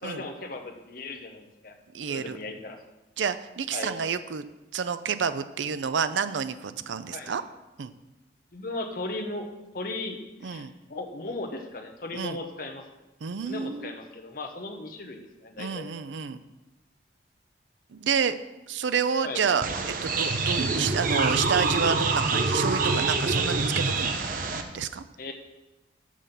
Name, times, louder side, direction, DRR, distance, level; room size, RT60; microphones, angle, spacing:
voice 1, 0.0-1.7 2.1-2.8 3.7-4.1 7.1-7.3 8.5-9.5 9.7-12.8 13.4-15.9 19.2-19.4 25.2-25.3, left 2 dB, 50° left, 4 dB, 0.9 m, -37 dB
voice 2, 1.9-2.4 3.2-4.4 4.7-7.4 7.8-7.9 10.4-10.7 12.1-12.4 13.2-13.9 15.6-16.4 17.9-18.4 18.7-19.7 20.0-24.2 24.7-25.0, right 6 dB, 80° right, 12 dB, 0.5 m, -29 dB
sound 1, 19.6-24.6, right 3 dB, 45° right, 0.7 m, -26 dB
7.3 x 5.7 x 6.7 m, 1.0 s
head